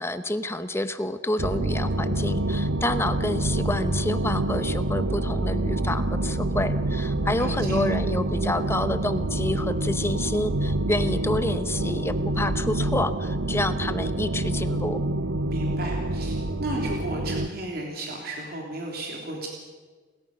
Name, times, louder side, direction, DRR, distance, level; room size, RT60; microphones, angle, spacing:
voice 1, 0.0-15.0, left 1 dB, 15° left, 10 dB, 0.9 m, -28 dB
sound 1, 1.4-17.5, right 2 dB, 90° right, 0.8 m, -27 dB
voice 2, 7.4-7.8 15.5-19.5, right 1 dB, 55° right, 0 dB, 3.2 m, -34 dB
29.5 x 14.0 x 6.5 m, 1.4 s
head